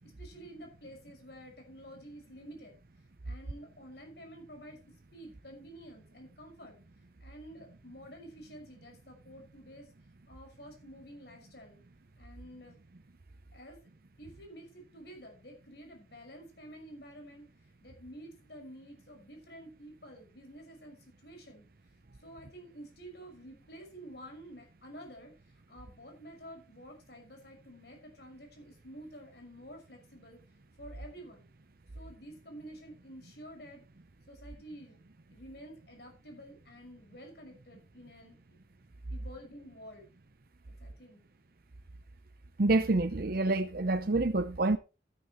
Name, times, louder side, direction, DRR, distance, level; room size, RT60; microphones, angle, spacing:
voice 1, 0.0-2.8 3.2-6.8 7.2-9.9 10.3-11.8 12.2-12.8 13.5-13.9 14.2-21.7 22.2-25.3 25.7-30.4 30.8-31.5 31.9-33.8 34.3-35.0 35.3-38.4 39.1-40.1 40.8-41.2, equal, 60° left, 5.9 m, -50 dB
voice 2, 42.6-44.8, right 2 dB, 50° right, 0.8 m, -27 dB
13.0 x 12.5 x 3.1 m
head